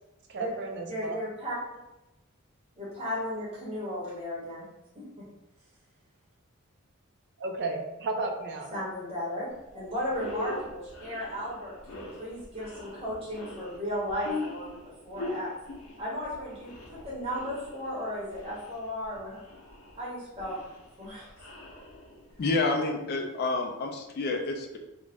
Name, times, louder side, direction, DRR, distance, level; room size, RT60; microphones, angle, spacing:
voice 1, 0.3-1.2 7.4-8.7, right 2 dB, 55° right, 2 dB, 0.4 m, -33 dB
voice 2, 0.9-1.6 2.8-4.7 4.9-5.2 8.7-14.8 15.1-15.5 16.0-19.4 20.0-20.6 21.0-21.3, equal, 25° right, -6 dB, 0.8 m, -35 dB
sound 1, 9.6-9.7 10.0-22.4, left 2 dB, 85° left, 0.6 m, -42 dB
voice 3, 22.4-24.8, left 3 dB, 45° left, 3 dB, 0.3 m, -29 dB
2.4 x 2.1 x 3.3 m, 0.98 s
head